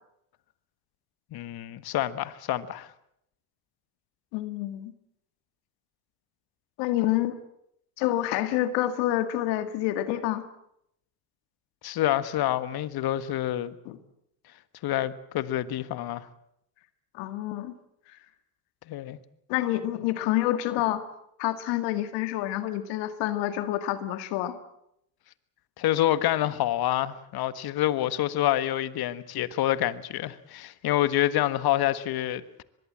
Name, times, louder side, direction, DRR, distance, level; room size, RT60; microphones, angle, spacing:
voice 1, 1.3-2.9 11.8-13.8 14.8-16.3 18.9-19.2 25.8-32.6, left 13 dB, 55° left, 1.6 m, -27 dB
voice 2, 4.3-4.9 6.8-7.4 8.0-10.4 13.9-14.0 17.1-17.7 19.5-21.0 21.4-24.6, left 14 dB, 70° left, 2.0 m, -28 dB
23.5 x 21.5 x 7.6 m
hypercardioid pair, 75°, 44 cm